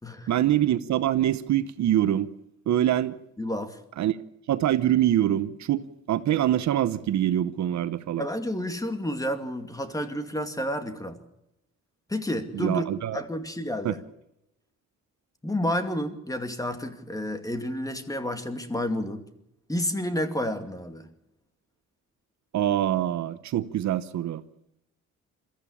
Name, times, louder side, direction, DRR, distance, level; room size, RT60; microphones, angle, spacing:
voice 1, 0.3-2.3 2.7-3.1 4.0-4.2 4.5-8.2 12.5-13.2 13.8-13.9 22.5-24.4, right 12 dB, 65° right, 0.9 m, -24 dB
voice 2, 3.4-3.8 8.2-11.2 12.1-14.0 15.4-19.2 19.7-21.1, equal, 10° left, 2.4 m, -30 dB
22.5 x 14.5 x 8.5 m
cardioid pair, 90°, 30 cm